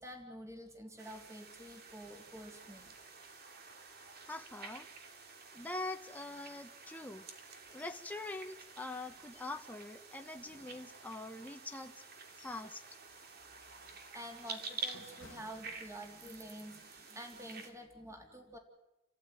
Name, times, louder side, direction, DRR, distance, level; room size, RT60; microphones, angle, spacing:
voice 1, 0.0-3.0 13.7-18.6, equal, 15° right, 3 dB, 3.4 m, -49 dB
sound 1, 1.0-17.7, right 4 dB, 55° right, 2.9 m, -50 dB
voice 2, 4.2-4.9 5.5-7.3 7.7-12.0 12.4-12.8, left 2 dB, 10° left, 5 dB, 1.2 m, -44 dB
sound 2, 7.8-8.1 8.4-8.5 9.0-9.9 10.4-11.4 12.0-12.8 13.1-13.4 13.9-16.4 16.8-17.0, left 3 dB, 85° left, 1.6 m, -62 dB
29.5 x 14.5 x 9.3 m, 0.97 s
head